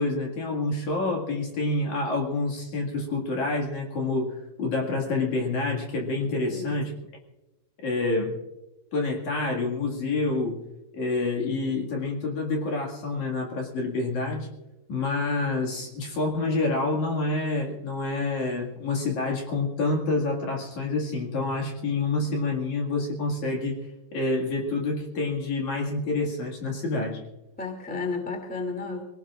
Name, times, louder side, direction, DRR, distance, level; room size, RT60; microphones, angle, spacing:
voice 1, 0.0-6.9 7.8-8.4 8.9-10.6 10.9-14.5 14.9-23.8 24.1-27.2, left 3 dB, 50° left, -1 dB, 3.0 m, -27 dB
voice 2, 6.4-6.8 27.6-29.0, left 4 dB, 5° left, 3 dB, 1.2 m, -32 dB
24.5 x 18.0 x 2.5 m, 1.0 s
omnidirectional pair, 4.9 m